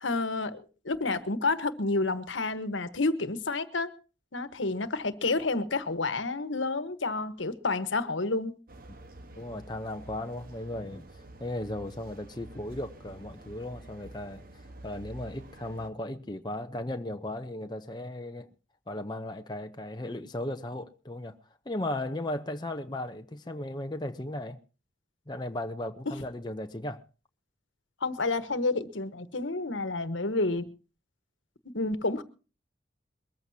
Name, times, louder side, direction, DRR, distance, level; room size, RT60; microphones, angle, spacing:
voice 1, 0.0-3.9 4.3-8.5 28.0-30.6 31.7-32.2, left 3 dB, 80° left, 1.3 m, -29 dB
sound 1, 8.7-15.9, right 1 dB, 50° right, 1.3 m, -48 dB
voice 2, 9.4-11.1 11.4-14.4 14.8-18.5 18.9-21.4 21.7-24.6 25.3-27.0, left 1 dB, 20° left, 0.8 m, -36 dB
23.0 x 14.5 x 2.8 m
head